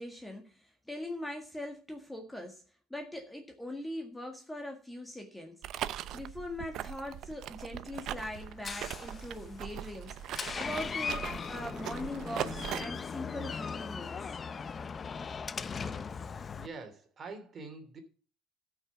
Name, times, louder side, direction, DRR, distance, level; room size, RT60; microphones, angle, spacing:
voice 1, 0.0-2.6 2.9-5.6 6.1-14.3 15.9-16.0, left 1 dB, 5° left, 3 dB, 1.8 m, -41 dB
sound 1, 5.6-12.9, right 11 dB, 55° right, 0.6 m, -40 dB
Door, 7.9-16.7, left 5 dB, 30° left, 0.7 m, -39 dB
voice 2, 16.1-18.0, right 4 dB, 30° right, 7 dB, 2.9 m, -46 dB
13.5 x 6.2 x 6.0 m, 0.36 s
cardioid pair, 130°, 0 cm